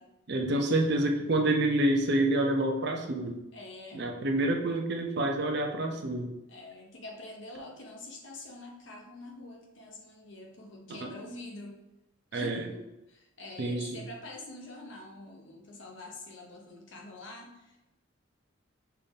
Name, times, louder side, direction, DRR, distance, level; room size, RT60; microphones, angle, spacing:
voice 1, 0.3-3.4 3.9-6.3 10.9-11.1 12.3-12.6 13.6-14.1, right 1 dB, 55° right, 3 dB, 0.6 m, -28 dB
voice 2, 3.5-4.0 6.5-11.8 12.3-17.9, left 2 dB, 60° left, 0 dB, 0.9 m, -46 dB
5.6 x 2.6 x 3.5 m, 0.96 s
head